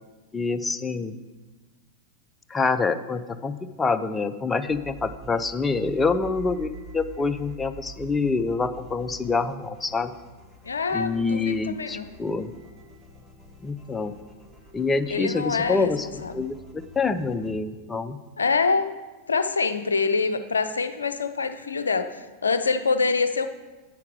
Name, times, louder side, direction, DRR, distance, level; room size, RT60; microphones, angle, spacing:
voice 1, 0.3-1.2 2.5-10.1 10.9-12.5 13.6-14.1 14.7-18.2, left 4 dB, 15° left, 12 dB, 0.4 m, -26 dB
sound 1, 4.6-17.5, right 3 dB, 10° right, 1.0 m, -46 dB
voice 2, 10.6-12.1 15.1-16.3 18.4-18.9 19.3-23.5, left 4 dB, 75° left, 10 dB, 0.4 m, -25 dB
8.5 x 5.8 x 4.6 m, 1.2 s
figure-of-eight pair, 90°, 0 cm